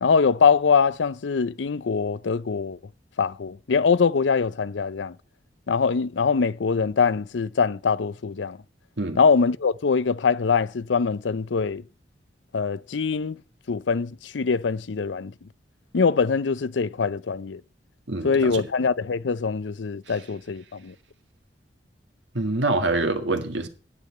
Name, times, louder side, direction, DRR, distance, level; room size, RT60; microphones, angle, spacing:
voice 1, 0.0-2.8 3.2-5.1 5.7-8.6 9.2-11.8 12.5-13.4 13.7-15.3 15.9-17.6 18.2-20.9, left 5 dB, 90° left, 0.5 m, -23 dB
voice 2, 18.1-18.7 20.1-20.2 22.3-23.7, right 2 dB, 90° right, 1.9 m, -26 dB
9.8 x 8.5 x 8.3 m
head